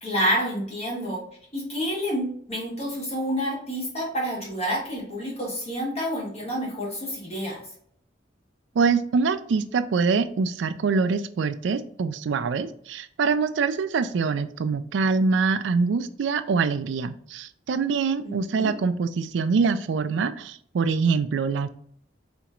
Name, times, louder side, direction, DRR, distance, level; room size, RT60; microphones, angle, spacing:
voice 1, 0.0-1.2 1.5-7.6 18.2-18.7, equal, 35° left, -3 dB, 1.3 m, -28 dB
voice 2, 8.8-21.7, right 5 dB, 70° right, 11 dB, 0.4 m, -24 dB
4.2 x 2.9 x 2.4 m, 0.63 s
head